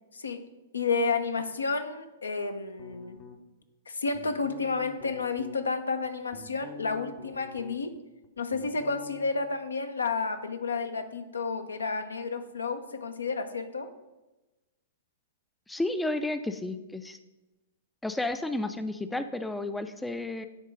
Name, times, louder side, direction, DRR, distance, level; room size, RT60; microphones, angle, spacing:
voice 1, 0.7-3.2 3.9-7.9 8.4-13.9, left 4 dB, 80° left, 9 dB, 0.7 m, -31 dB
sound 1, 2.8-3.6 4.1-5.6 6.0-8.0 8.2-9.3, left 5 dB, 40° left, 0.7 m, -47 dB
voice 2, 15.7-17.2 18.0-20.5, left 2 dB, 5° left, 10 dB, 0.4 m, -32 dB
9.8 x 3.6 x 5.3 m, 1.1 s
figure-of-eight pair, 105°, 0 cm